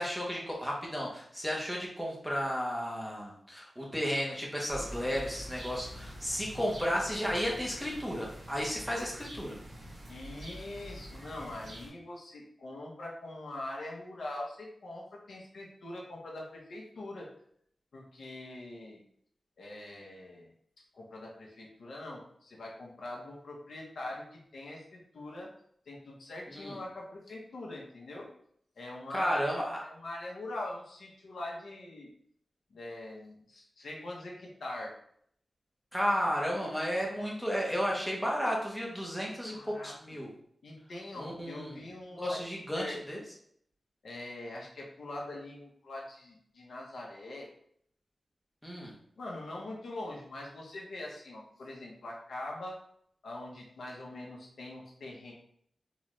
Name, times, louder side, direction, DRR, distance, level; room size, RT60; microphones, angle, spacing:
voice 1, 0.0-9.6 26.5-26.8 29.1-29.8 35.9-40.3 41.2-41.8 42.1-43.2 48.6-48.9, equal, ahead, -3 dB, 0.8 m, -33 dB
sound 1, 4.7-11.9, equal, 60° right, 1.4 m, -46 dB
voice 2, 10.1-17.3 17.9-19.0 19.6-20.5 20.9-25.5 25.9-28.3 28.8-32.1 32.7-34.9 37.2-37.3 39.5-39.9 40.6-42.4 42.7-43.0 44.0-47.5 49.2-52.8 53.2-55.3, left 1 dB, 85° left, -2 dB, 0.8 m, -43 dB
3.9 x 2.3 x 3.1 m, 0.66 s
wide cardioid pair, 140°, 0 cm